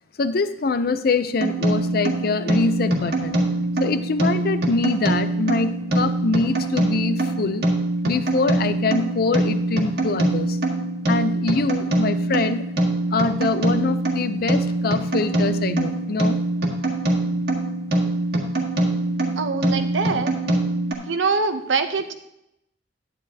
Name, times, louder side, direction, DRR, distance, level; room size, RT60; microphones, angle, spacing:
voice 1, 0.2-3.4 3.8-7.7 8.0-10.6 11.1-12.7 13.1-16.4, left 3 dB, 55° left, 11 dB, 0.5 m, -24 dB
sound 1, 1.4-20.9, right 2 dB, 60° right, 1.6 m, -23 dB
voice 2, 19.4-20.3 21.1-22.1, right 4 dB, 85° right, 9 dB, 0.7 m, -23 dB
10.0 x 9.9 x 2.8 m, 0.82 s
head